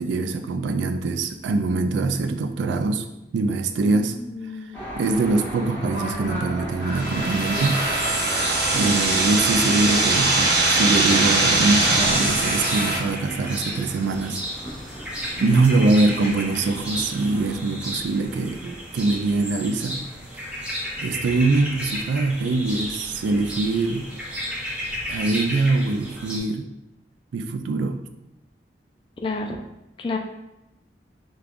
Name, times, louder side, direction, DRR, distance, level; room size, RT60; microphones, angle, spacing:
voice 1, 0.0-3.1 3.3-4.2 4.6-4.7 5.0-7.8 8.7-14.4 15.0-15.1 15.4-20.0 20.6-20.7 21.0-24.1 25.1-26.7 27.3-28.0, right 3 dB, 85° right, 8 dB, 0.3 m, -23 dB
voice 2, 3.9-4.8 29.2-29.6 30.0-30.2, left 3 dB, 30° left, 2 dB, 0.3 m, -30 dB
sound 1, 4.7-17.6, equal, 10° left, 1.1 m, -37 dB
sound 2, 6.9-26.4, equal, 5° right, 0.6 m, -33 dB
sound 3, 6.9-13.0, right 2 dB, 60° right, 0.7 m, -21 dB
5.1 x 2.3 x 2.4 m, 0.92 s
head